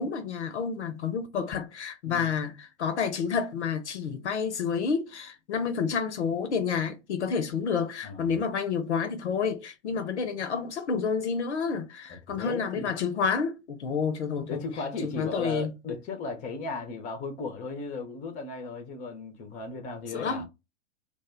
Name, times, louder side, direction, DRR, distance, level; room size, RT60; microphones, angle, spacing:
voice 1, 0.0-14.6 15.0-15.7 20.1-20.5, left 6 dB, 60° left, 0.6 m, -29 dB
voice 2, 12.1-12.9 14.5-20.5, left 3 dB, 20° left, 0.6 m, -36 dB
2.5 x 2.1 x 3.5 m
figure-of-eight pair, 100°, 38 cm